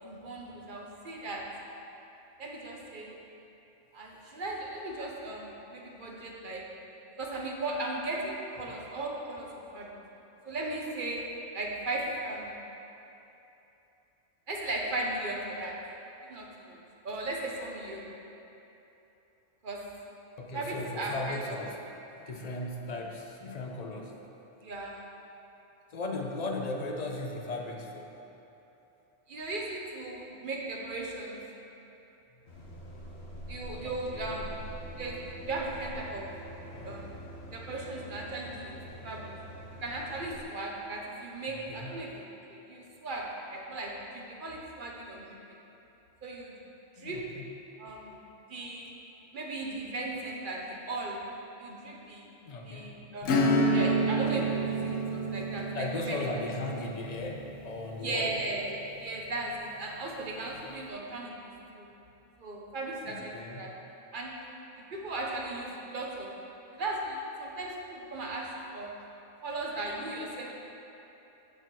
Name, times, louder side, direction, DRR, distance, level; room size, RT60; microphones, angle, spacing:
voice 1, 0.0-1.4 2.4-3.1 3.9-6.6 7.2-9.9 10.4-11.2 11.5-12.6 14.5-15.7 16.2-16.8 17.0-18.1 19.6-19.8 20.5-21.6 24.6-25.0 29.3-31.4 33.5-34.6 35.0-36.2 36.8-37.2 37.5-38.7 39.0-39.3 39.8-42.2 42.5-45.6 46.2-46.5 47.0-47.2 47.8-48.2 48.5-48.9 49.3-51.2 51.6-52.3 52.6-53.4 53.7-56.3 58.0-61.9 62.4-63.7 64.1-64.4 64.7-66.3 66.7-68.9 69.4-70.5, right 2 dB, 45° right, -1 dB, 0.9 m, -37 dB
voice 2, 20.4-21.8 22.1-24.1 25.9-28.1 32.3-32.4 33.8-34.4 36.7-37.2 41.5-41.9 47.0-47.5 52.5-52.9 55.7-58.4 63.0-63.6, left 2 dB, 40° left, 1 dB, 0.6 m, -37 dB
sound 1, 32.5-40.4, right 1 dB, 60° left, 1.5 m, -45 dB
Acoustic guitar / Strum, 53.2-59.5, right 1 dB, 80° left, 1.1 m, -30 dB
6.6 x 6.5 x 4.5 m, 3.0 s
omnidirectional pair, 1.3 m